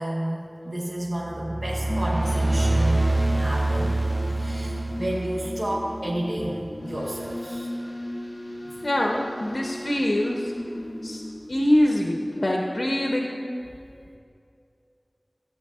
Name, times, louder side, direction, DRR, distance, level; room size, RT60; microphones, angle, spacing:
voice 1, 0.0-4.0 4.2-7.7, right 1 dB, 65° right, -4 dB, 1.0 m, -31 dB
sound 1, 1.3-5.9, right 2 dB, 35° right, 0.5 m, -25 dB
sound 2, 1.8-12.1, left 1 dB, 60° left, 1.5 m, -36 dB
voice 2, 8.8-10.5 11.0-11.2 11.5-13.4, left 1 dB, 75° left, -1 dB, 0.7 m, -24 dB
14.5 x 8.7 x 2.4 m, 2.5 s
wide cardioid pair, 40°, 0 cm